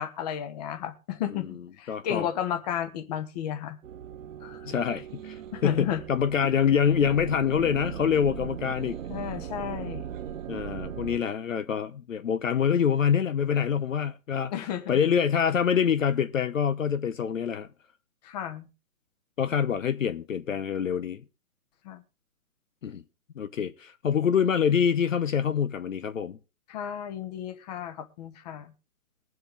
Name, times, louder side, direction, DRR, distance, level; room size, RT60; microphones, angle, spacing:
voice 1, 0.0-3.8 4.4-4.7 5.5-6.0 6.4-6.5 9.1-10.1 14.5-15.0 18.2-18.7 21.8-22.0 26.7-28.7, left 10 dB, 30° left, 1.2 m, -33 dB
voice 2, 1.9-2.3 4.7-9.0 10.5-14.5 14.9-17.7 19.4-21.2 22.8-23.0 23.4-26.4, left 7 dB, 60° left, 0.9 m, -26 dB
sound 1, 3.8-11.2, right 9 dB, 60° right, 0.8 m, -38 dB
21.5 x 7.8 x 3.5 m
figure-of-eight pair, 135°, 44 cm